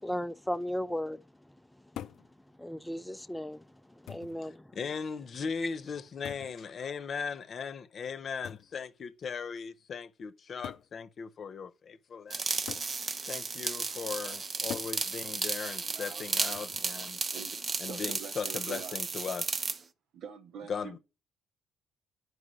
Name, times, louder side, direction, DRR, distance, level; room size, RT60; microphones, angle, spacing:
voice 1, 0.0-1.2 2.6-3.6 4.0-4.7, equal, 5° left, 0.5 m, -35 dB
sound 1, 2.0-2.3 3.3-3.4 4.1-4.4 6.2-6.6 8.4-8.7 9.8-9.9 10.6-10.9 12.7-13.0 14.7-15.0 16.5-16.9, left 11 dB, 80° left, 0.5 m, -43 dB
voice 2, 4.7-12.4 13.3-17.2 17.8-19.7 20.7-21.0, left 6 dB, 50° left, 0.9 m, -38 dB
sound 2, 12.3-19.8, right 4 dB, 40° right, 0.8 m, -34 dB
voice 3, 15.8-16.7 17.3-19.0 20.1-21.0, right 6 dB, 75° right, 1.2 m, -46 dB
9.7 x 4.9 x 6.3 m
cardioid pair, 90°, 0 cm